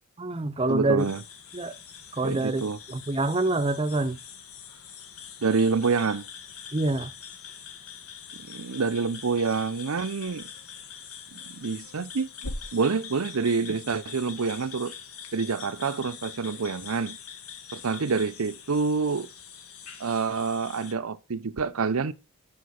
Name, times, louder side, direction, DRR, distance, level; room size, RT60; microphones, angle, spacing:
voice 1, 0.2-1.0 1.5-1.7 2.1-2.6 2.9-4.2 6.7-7.1, right 2 dB, 25° right, 0.6 m, -26 dB
voice 2, 0.7-1.2 2.2-2.8 5.4-6.3 8.3-10.5 11.3-12.3 12.7-14.9 15.3-17.2 17.7-19.3 20.0-22.1, right 4 dB, 85° right, 0.7 m, -27 dB
sound 1, 1.0-20.9, left 6 dB, 90° left, 1.7 m, -43 dB
10.5 x 5.0 x 6.4 m
head